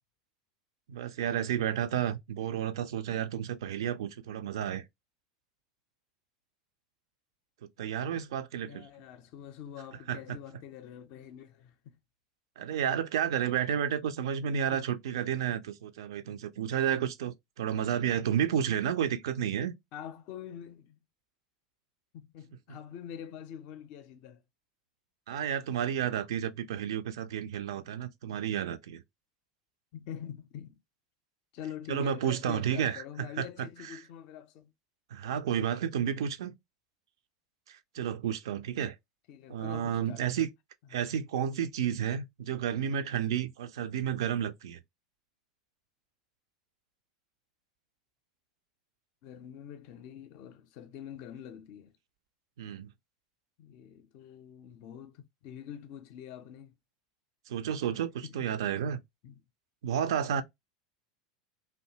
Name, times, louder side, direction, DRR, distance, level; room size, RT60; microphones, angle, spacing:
voice 1, 0.9-4.8 7.8-8.9 10.1-10.4 12.6-19.7 25.3-29.0 31.9-33.0 33.4-33.5 33.9-34.0 35.1-36.5 37.7-38.9 39.5-40.5 40.9-44.8 52.6-52.9 57.5-59.0 59.8-60.4, right 9 dB, 60° right, 0.3 m, -31 dB
voice 2, 8.6-12.0 14.5-14.8 19.9-21.0 22.1-24.4 29.9-30.8 31.5-34.7 39.3-40.2 40.9-41.1 49.2-51.9 53.6-56.7 58.2-58.5 59.2-59.4, left 9 dB, 45° left, 0.4 m, -45 dB
2.6 x 2.2 x 2.7 m
figure-of-eight pair, 80°, 3 cm